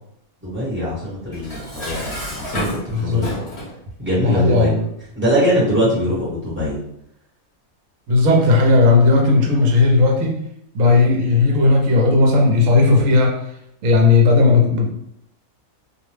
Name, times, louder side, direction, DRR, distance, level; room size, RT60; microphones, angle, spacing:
voice 1, 0.4-2.7 3.0-3.4 4.0-4.7 5.1-6.8, equal, 10° right, -9 dB, 0.9 m, -22 dB
Dishes pots and pans, 1.3-3.8, left 1 dB, 25° left, 0.7 m, -30 dB
voice 2, 2.9-3.3 4.2-4.8 8.1-10.4 10.7-13.4 13.8-14.9, left 3 dB, 70° right, 1 dB, 1.0 m, -15 dB
2.5 x 2.1 x 3.2 m, 0.75 s
omnidirectional pair, 1.5 m